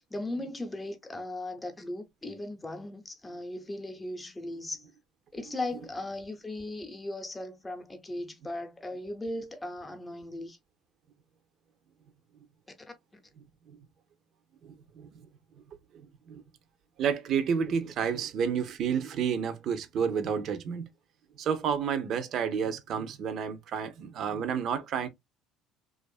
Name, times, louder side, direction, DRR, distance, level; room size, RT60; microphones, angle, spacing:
voice 1, 0.0-4.9 5.3-10.6, left 1 dB, 15° left, 0.7 m, -37 dB
voice 2, 13.4-13.8 14.6-15.2 15.9-16.4 17.0-20.9 21.4-25.1, right 7 dB, 55° right, 0.6 m, -30 dB
2.5 x 2.4 x 2.3 m
supercardioid pair, 90°, 0 cm